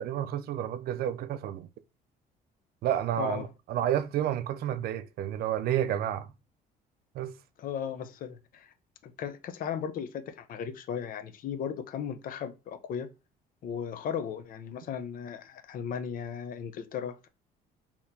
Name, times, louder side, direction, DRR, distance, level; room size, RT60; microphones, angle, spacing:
voice 1, 0.0-1.7 2.8-6.3 7.1-7.3, right 11 dB, 65° right, 0.4 m, -30 dB
voice 2, 3.2-3.5 7.6-8.7 9.0-13.1 13.6-17.3, left 8 dB, 55° left, 0.6 m, -36 dB
4.2 x 2.9 x 2.6 m
cardioid pair, 110°, 17 cm